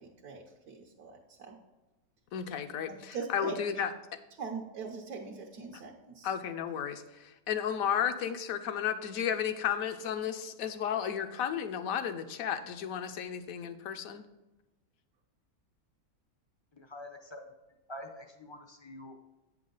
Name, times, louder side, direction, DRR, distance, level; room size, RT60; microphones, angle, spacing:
voice 1, 0.2-1.1 1.5-1.6 3.1-3.5 4.4-6.3, right 5 dB, 80° right, 0 dB, 1.4 m, -41 dB
voice 2, 2.3-3.9 5.7-5.8 6.2-14.2, left 8 dB, 70° left, 10 dB, 1.1 m, -33 dB
voice 3, 16.7-17.5 17.9-19.3, left 1 dB, 40° left, 4 dB, 0.4 m, -46 dB
8.4 x 6.3 x 3.9 m, 1.1 s
omnidirectional pair, 1.6 m